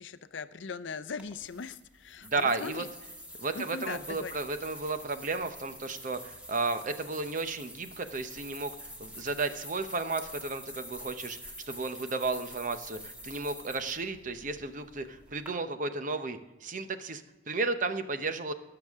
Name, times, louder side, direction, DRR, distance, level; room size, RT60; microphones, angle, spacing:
voice 1, 0.0-2.9 3.5-4.4, left 5 dB, 75° left, 12 dB, 0.6 m, -40 dB
sound 1, 1.2-15.5, equal, 5° right, 1.6 m, -47 dB
voice 2, 2.2-2.8 3.4-18.5, right 3 dB, 45° right, 9 dB, 0.8 m, -33 dB
18.0 x 6.8 x 3.6 m, 1.1 s
head